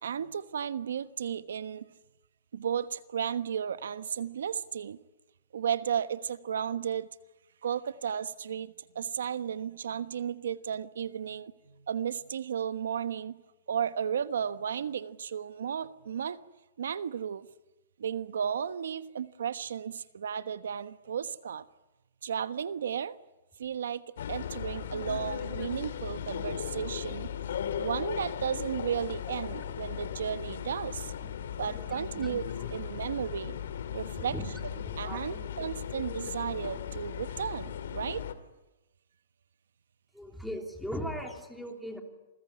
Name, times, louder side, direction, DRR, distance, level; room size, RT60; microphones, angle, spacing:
voice 1, 0.0-1.8 2.5-5.0 5.5-7.1 7.6-11.5 11.8-13.4 13.7-16.4 16.8-17.5 18.0-21.6 22.2-23.1 23.6-24.0 24.3-27.3 27.8-31.1 31.6-33.6 33.9-34.3 35.0-38.2, right 8 dB, 90° right, 13 dB, 1.2 m, -34 dB
sound 1, 24.2-38.3, left 9 dB, 65° left, 2.4 m, -37 dB
voice 2, 31.2-33.1 34.1-34.5 34.8-35.7 40.1-42.0, equal, ahead, 2 dB, 3.0 m, -40 dB
28.0 x 21.5 x 9.7 m, 1.0 s
hypercardioid pair, 175°, 0 cm